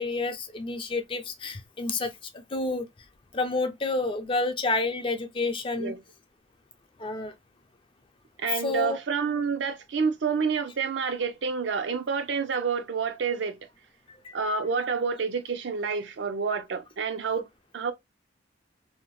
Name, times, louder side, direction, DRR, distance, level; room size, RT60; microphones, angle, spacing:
voice 1, 0.0-2.9 3.3-5.9 7.0-7.3 8.6-9.0 14.2-14.4, left 3 dB, 30° left, 0.4 m, -29 dB
voice 2, 8.4-13.6 14.3-17.5 17.7-17.9, right 5 dB, 75° right, 0.5 m, -28 dB
2.7 x 2.0 x 3.0 m
head